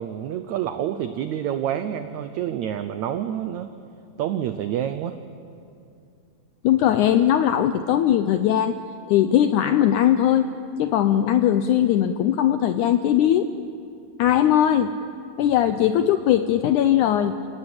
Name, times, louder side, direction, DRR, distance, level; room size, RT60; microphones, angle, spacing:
voice 1, 0.0-3.7 4.2-5.2, right 10 dB, 80° right, 10 dB, 1.6 m, -28 dB
voice 2, 6.6-8.8 9.1-10.5 10.8-13.5 14.2-15.0 15.4-17.4, left 11 dB, 80° left, 9 dB, 1.8 m, -19 dB
28.5 x 16.0 x 8.8 m, 2.6 s
omnidirectional pair, 4.1 m